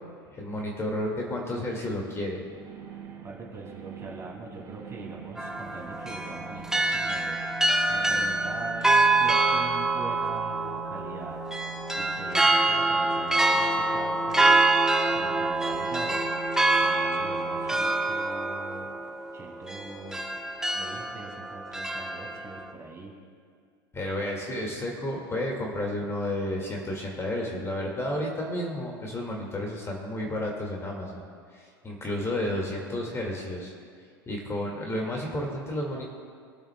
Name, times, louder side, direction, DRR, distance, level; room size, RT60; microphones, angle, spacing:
voice 1, 0.4-2.4 23.9-31.2 31.5-33.7 34.3-36.0, left 1 dB, 20° left, -1 dB, 2.1 m, -31 dB
sound 1, 2.3-17.8, right 10 dB, 45° right, 2.9 m, -43 dB
voice 2, 3.2-11.4 11.9-16.2 16.8-18.9 19.3-20.2 20.7-23.2, right 3 dB, 20° right, -2 dB, 2.7 m, -42 dB
sound 2, 5.4-22.7, right 2 dB, 5° right, 0.8 m, -26 dB
24.0 x 8.6 x 2.3 m, 2.1 s
figure-of-eight pair, 80°, 13 cm